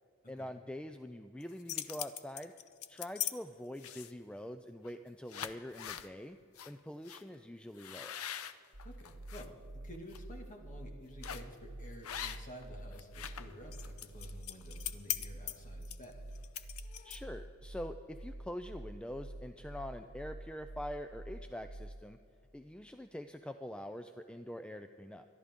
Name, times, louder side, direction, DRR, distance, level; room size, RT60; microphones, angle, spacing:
voice 1, 0.3-2.5 2.9-6.4 6.7-8.2 17.0-22.2 22.5-25.3, left 1 dB, 5° left, 8 dB, 0.3 m, -44 dB
sound 1, 1.4-3.3 3.8-4.3 4.8-5.0 5.3-6.1 6.6-6.7 7.1-7.2 7.8-9.5 9.9-10.2 11.2-11.5 12.0-12.6 12.9-17.4, left 11 dB, 75° left, 0.7 m, -41 dB
sound 2, 8.7-22.1, right 1 dB, 65° right, 1.8 m, -48 dB
voice 2, 8.8-16.3, equal, 35° left, 1 dB, 2.0 m, -52 dB
25.5 x 11.5 x 3.7 m, 2.3 s
head